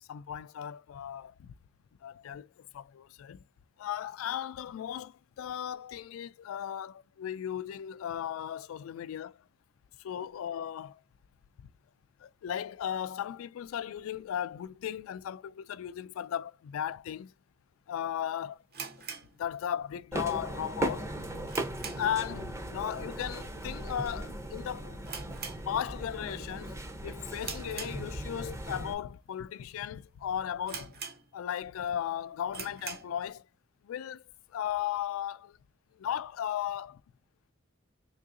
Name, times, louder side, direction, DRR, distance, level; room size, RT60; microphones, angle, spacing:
voice 1, 0.1-1.5 2.0-3.4 3.8-9.4 10.0-11.0 11.6-11.7 12.2-17.3 17.9-18.6 19.4-21.2 22.0-25.0 25.7-26.8 27.0-30.9 31.3-33.4 33.8-34.2 34.5-35.6 36.0-37.0, left 10 dB, 90° left, 0.3 m, -36 dB
sound 1, 18.7-20.1 20.3-20.4 20.9-22.3 22.6-22.9 23.2-23.3 23.9-24.2 24.5-24.6 25.0-26.2 26.5-26.8 27.4-28.5 29.1-29.2 29.8-29.9 30.1-30.2 30.7-31.6 32.0-32.1 32.5-33.2, right 5 dB, 50° right, 0.8 m, -43 dB
sound 2, 20.1-28.9, right 1 dB, 15° right, 0.5 m, -38 dB
3.7 x 2.7 x 2.5 m
head